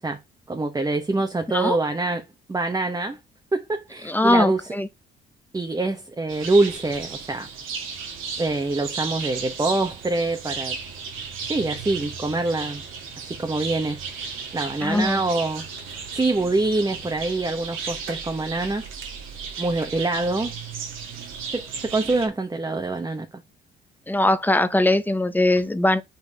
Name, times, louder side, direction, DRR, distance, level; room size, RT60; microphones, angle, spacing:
voice 1, 0.5-3.2 3.5-4.7 5.5-7.5 8.4-10.8 11.5-12.8 13.3-14.0 14.5-15.6 16.1-18.8 19.6-20.5 21.5-23.3, right 2 dB, 20° right, 1.0 m, -25 dB
voice 2, 4.1-4.9 14.8-15.2 24.1-26.0, left 1 dB, 10° left, 0.9 m, -21 dB
sound 1, 6.3-22.3, right 5 dB, 85° right, 2.1 m, -35 dB
5.5 x 4.6 x 4.6 m
cardioid pair, 90°, 20 cm